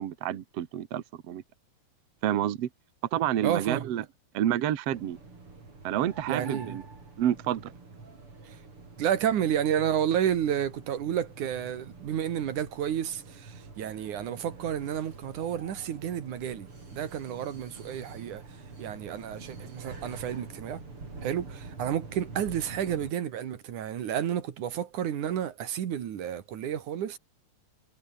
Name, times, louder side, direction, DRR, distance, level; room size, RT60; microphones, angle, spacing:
voice 1, 0.0-1.4 2.2-2.7 3.1-4.0 4.3-5.2 5.8-6.8 7.2-7.7, right 11 dB, 60° right, 2.2 m, -29 dB
voice 2, 3.4-3.9 6.3-6.8 8.4-8.6 9.0-18.4 18.8-20.8 21.2-27.2, right 9 dB, 80° right, 3.3 m, -31 dB
sound 1, 4.9-23.1, right 3 dB, 45° right, 6.2 m, -46 dB
omnidirectional pair, 3.5 m